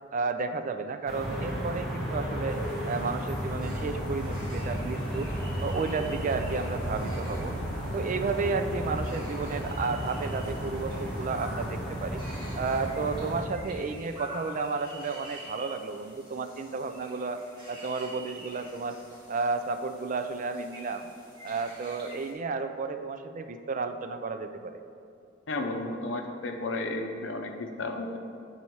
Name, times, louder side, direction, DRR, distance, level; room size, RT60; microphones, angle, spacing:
voice 1, 0.1-2.6 2.8-5.3 5.6-7.6 7.9-12.2 12.6-17.4 17.7-19.0 19.3-21.1 21.4-24.8, right 4 dB, 40° right, 8 dB, 0.4 m, -32 dB
sound 1, 1.1-13.4, equal, ahead, 1.3 m, -33 dB
Elephantplains oriole, 2.5-22.3, right 1 dB, 25° right, 1.8 m, -48 dB
voice 2, 25.5-28.2, left 2 dB, 70° left, 4 dB, 0.7 m, -33 dB
8.4 x 4.1 x 4.5 m, 2.5 s
head